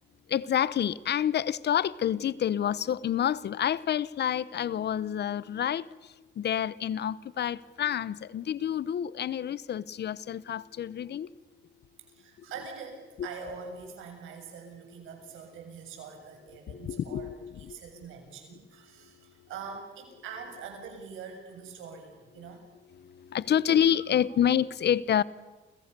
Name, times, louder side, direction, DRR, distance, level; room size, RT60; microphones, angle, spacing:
voice 1, 0.3-11.3 16.7-17.8 19.4-19.5 22.5-22.6 22.9-25.2, left 9 dB, 60° left, 0.9 m, -28 dB
voice 2, 12.1-17.3 17.6-22.6, right 5 dB, 85° right, 7.3 m, -44 dB
29.5 x 27.0 x 6.9 m
cardioid pair, 90°, 20 cm